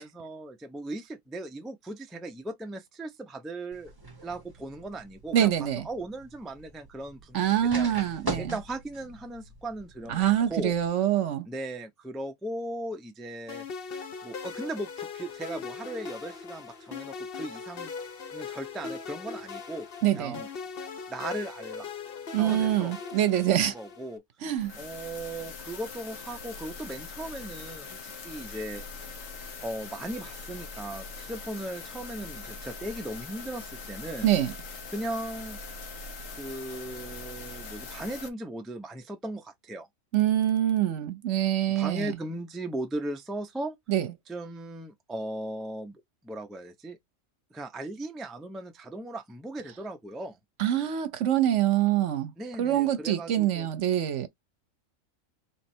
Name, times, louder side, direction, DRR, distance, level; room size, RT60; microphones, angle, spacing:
voice 1, 0.0-3.9 4.2-5.5 5.8-7.9 8.4-10.2 10.5-10.7 11.5-13.7 14.2-17.9 18.3-19.9 20.1-20.5 21.1-21.9 22.3-22.9 23.5-24.2 24.7-28.8 29.6-34.3 34.9-35.6 36.3-39.9 41.8-43.8 44.3-47.0 47.5-50.4 52.4-53.7, right 1 dB, ahead, 0.4 m, -37 dB
sound 1, 3.7-10.9, right 2 dB, 20° right, 1.0 m, -42 dB
voice 2, 5.3-5.9 7.3-8.6 10.1-11.5 20.0-20.4 22.3-23.7 24.4-24.7 34.2-34.5 40.1-42.2 43.9-44.1 50.6-52.3 52.6-54.3, right 11 dB, 65° right, 1.0 m, -25 dB
sound 2, 13.5-24.2, left 5 dB, 50° left, 0.9 m, -40 dB
sound 3, 24.6-38.3, left 4 dB, 75° left, 1.3 m, -42 dB
3.5 x 3.2 x 4.4 m
omnidirectional pair, 1.4 m